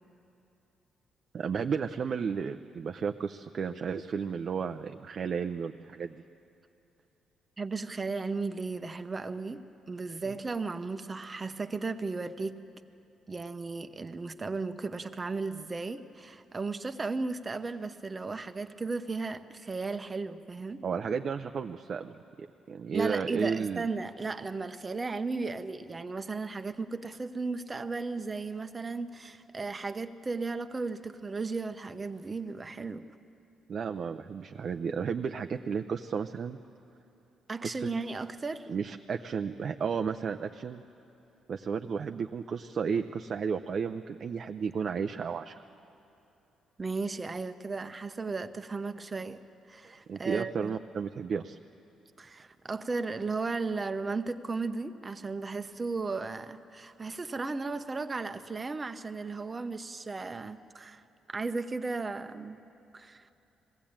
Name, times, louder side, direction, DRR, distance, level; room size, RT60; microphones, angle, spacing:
voice 1, 1.3-6.2 10.3-10.4 20.8-23.9 33.7-36.6 37.6-37.9 38.7-40.8 41.5-45.6 50.1-51.6, right 6 dB, 50° right, 6 dB, 0.5 m, -33 dB
voice 2, 7.6-12.6 13.3-20.8 22.9-33.1 37.5-38.7 46.8-49.4 49.7-50.8 52.2-61.0 61.3-62.6 62.9-63.3, right 3 dB, 25° right, 8 dB, 0.8 m, -35 dB
20.5 x 15.5 x 8.8 m, 2.9 s
cardioid pair, 90°, 0 cm